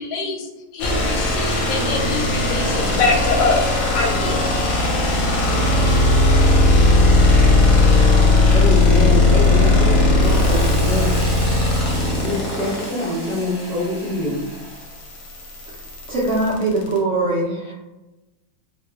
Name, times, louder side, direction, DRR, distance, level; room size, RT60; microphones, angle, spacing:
voice 1, 0.0-3.7 3.9-4.5, left 3 dB, 85° left, 0 dB, 1.3 m, -24 dB
sound 1, 0.8-17.0, left 2 dB, 65° left, 0.9 m, -17 dB
voice 2, 8.5-11.2 12.2-14.4, left 1 dB, 45° left, -10 dB, 0.5 m, -25 dB
Hiss, 10.2-14.9, equal, 15° right, 1.1 m, -34 dB
voice 3, 16.1-17.7, right 2 dB, 75° right, -7 dB, 0.6 m, -21 dB
2.9 x 2.1 x 2.3 m, 1.0 s
omnidirectional pair, 2.0 m